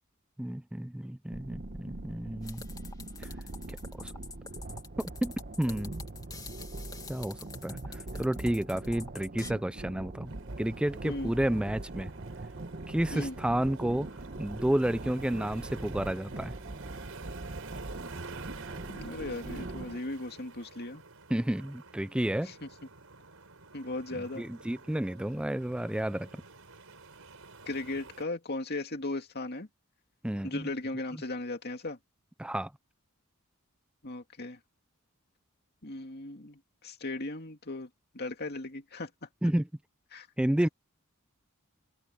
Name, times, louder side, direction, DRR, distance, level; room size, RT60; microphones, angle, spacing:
voice 1, 0.4-2.6 3.2-3.3 3.7-4.1 5.2-5.9 7.1-10.3 10.6-12.1 12.9-14.1 14.4-16.6 21.3-22.5 24.1-26.4 30.2-30.7 32.4-32.7 39.4-39.7 40.4-40.7, right 1 dB, 5° right, 0.3 m, -31 dB
sound 1, 1.3-20.0, right 2 dB, 45° right, 1.1 m, -42 dB
sound 2, 2.4-9.5, left 4 dB, 20° left, 2.0 m, -47 dB
sound 3, 10.3-28.2, right 4 dB, 75° right, 5.4 m, -50 dB
voice 2, 18.9-21.0 22.5-22.7 23.7-24.5 27.7-29.7 30.4-32.0 34.0-34.6 35.8-37.9 38.1-39.3 40.1-40.3, left 2 dB, 50° left, 2.5 m, -37 dB
head